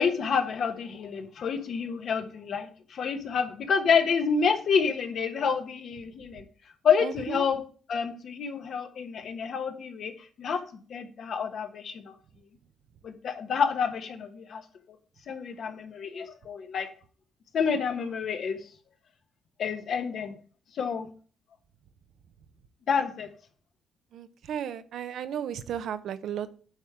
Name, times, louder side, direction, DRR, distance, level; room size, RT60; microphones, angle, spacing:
voice 1, 0.0-6.4 6.8-7.6 7.9-10.1 10.4-10.6 10.9-12.1 13.0-14.6 15.3-16.9 17.5-18.6 19.6-20.3 20.7-21.1 22.9-23.3, left 6 dB, 60° left, 7 dB, 1.2 m, -28 dB
voice 2, 7.0-7.5 24.1-26.5, right 9 dB, 70° right, 12 dB, 0.6 m, -34 dB
8.9 x 3.6 x 5.9 m, 0.42 s
cardioid pair, 90°, 0 cm